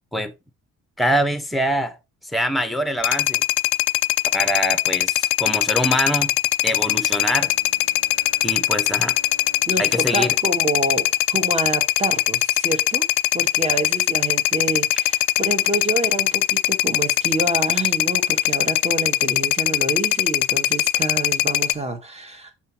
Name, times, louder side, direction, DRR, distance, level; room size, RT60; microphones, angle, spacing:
voice 1, 1.0-2.0 2.3-3.4 4.3-6.3 6.6-7.5 8.4-9.2 9.8-10.4, equal, ahead, 1.0 m, -24 dB
sound 1, 3.0-21.7, left 16 dB, 80° left, 0.5 m, -21 dB
Bowed string instrument, 6.7-11.6, equal, 65° right, 4.0 m, -49 dB
voice 2, 9.7-13.1 13.3-22.5, right 2 dB, 20° right, 1.5 m, -27 dB
6.0 x 5.6 x 2.9 m
cardioid pair, 90°, 30 cm